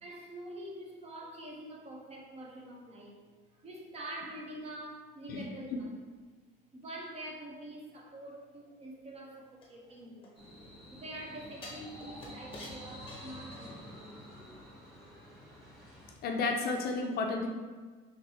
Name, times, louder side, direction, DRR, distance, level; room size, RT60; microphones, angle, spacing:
voice 1, 0.0-3.2 3.5-5.9 6.7-10.4 10.9-14.2, right 1 dB, 30° right, -1 dB, 0.6 m, -46 dB
sound 1, 9.6-10.8 11.6-14.0 14.3-14.4, left 2 dB, 25° left, 0.8 m, -50 dB
sound 2, 10.4-16.1, equal, ahead, 1.3 m, -49 dB
voice 2, 16.2-17.5, left 3 dB, 50° left, 2 dB, 0.4 m, -32 dB
3.5 x 3.1 x 2.7 m, 1.4 s
cardioid pair, 135°, 21 cm